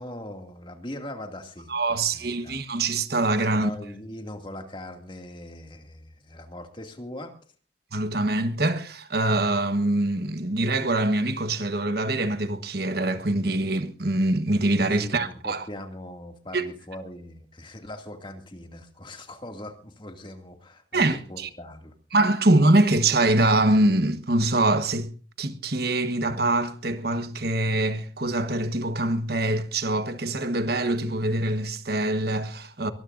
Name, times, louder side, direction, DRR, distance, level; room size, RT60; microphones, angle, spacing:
voice 1, 0.0-2.6 3.5-7.3 15.0-21.9, left 1 dB, 25° left, 2.4 m, -40 dB
voice 2, 1.7-3.7 7.9-15.7 16.5-16.6 20.9-21.5 22.1-25.1 25.4-32.9, right 2 dB, 55° right, 1.3 m, -24 dB
23.5 x 20.0 x 2.6 m
head